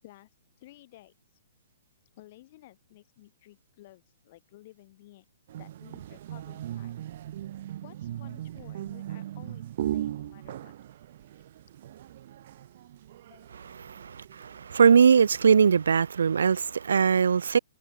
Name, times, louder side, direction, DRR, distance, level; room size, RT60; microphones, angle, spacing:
voice 1, 0.6-1.1 2.2-5.3 5.6-6.9 7.8-10.7 13.3-13.5 14.0-14.1, left 16 dB, 40° left, 6.4 m, -53 dB
sound 1, 5.5-15.7, right 12 dB, 45° right, 1.1 m, -39 dB
voice 2, 13.8-17.6, right 6 dB, 60° right, 0.4 m, -21 dB
figure-of-eight pair, 120°, 0 cm